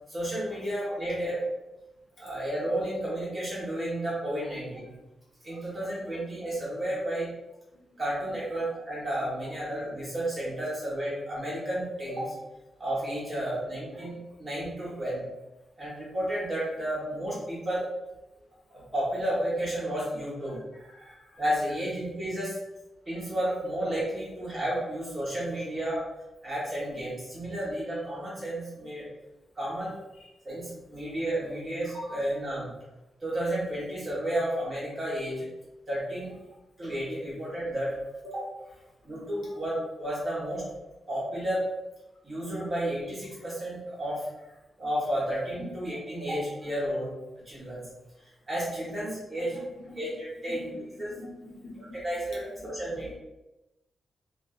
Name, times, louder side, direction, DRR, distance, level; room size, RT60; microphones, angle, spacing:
voice 1, 0.1-1.4 2.2-4.9 5.4-7.3 8.0-12.3 12.8-15.3 15.8-17.9 18.7-20.6 21.4-22.6 23.1-26.0 26.4-29.0 29.5-29.9 30.4-32.7 33.2-35.5 35.9-36.3 36.8-38.0 38.2-38.5 39.0-40.6 41.1-41.6 42.2-44.3 44.8-47.1 47.4-47.8 48.5-49.6 50.0-50.7 51.0-51.1 51.8-53.1, right 1 dB, 25° right, -8 dB, 1.1 m, -32 dB
voice 2, 5.5-6.2 7.7-8.0 9.4-9.5 14.0-14.1 20.5-21.4 30.2-30.3 31.8-31.9 39.1-39.5 45.6-45.7 49.5-50.0 50.5-50.6 51.0-52.0 52.6-52.7, left 2 dB, 65° left, -6 dB, 0.9 m, -48 dB
2.4 x 2.4 x 2.3 m, 1.0 s
wide cardioid pair, 145°, 0 cm